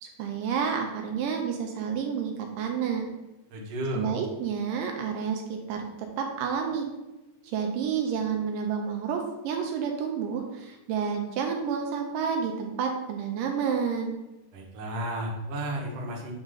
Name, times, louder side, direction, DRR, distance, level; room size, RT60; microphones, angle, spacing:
voice 1, 0.0-3.1 3.9-6.9 7.4-14.2, right 6 dB, 85° right, 2 dB, 2.3 m, -30 dB
voice 2, 3.5-4.1 14.5-16.3, right 1 dB, 55° right, -3 dB, 2.1 m, -33 dB
8.1 x 3.8 x 3.9 m, 1.0 s
omnidirectional pair, 3.9 m